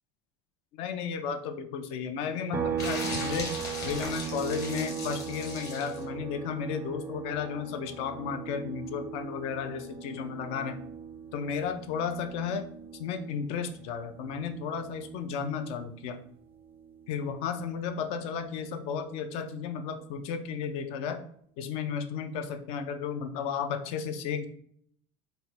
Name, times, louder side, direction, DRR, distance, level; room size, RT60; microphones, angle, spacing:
voice 1, 0.7-3.5 3.8-10.8 11.3-12.6 13.0-16.2 17.1-21.2 21.6-24.5, left 6 dB, 50° left, 7 dB, 0.5 m, -33 dB
sound 1, 2.5-16.1 16.4-18.6, right 7 dB, 15° right, 0.4 m, -39 dB
sound 2, 2.8-6.0, left 3 dB, 25° left, 1.1 m, -38 dB
4.4 x 2.2 x 4.1 m, 0.64 s
cardioid pair, 165°, 13 cm